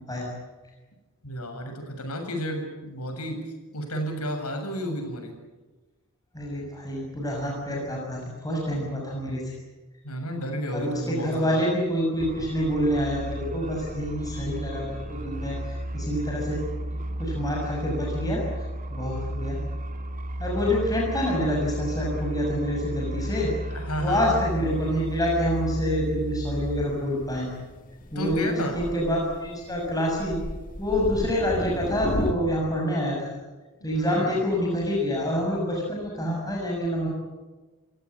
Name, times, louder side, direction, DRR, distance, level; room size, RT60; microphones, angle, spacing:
voice 1, 1.2-3.4 3.7-5.3 8.7-8.9 10.0-11.6 23.7-24.4 28.1-28.8 33.8-34.4, equal, 90° left, 4 dB, 7.4 m, -32 dB
voice 2, 6.3-9.5 10.7-16.6 16.9-18.4 18.9-19.6 20.4-23.5 24.0-27.5 28.1-30.4 30.8-33.4 33.8-37.1, equal, 15° left, -2 dB, 6.6 m, -27 dB
sound 1, 12.2-26.9, right 1 dB, 40° right, 2.1 m, -33 dB
Thunder, 24.4-32.3, left 1 dB, 40° left, 2.5 m, -35 dB
29.0 x 17.0 x 9.9 m, 1.2 s
head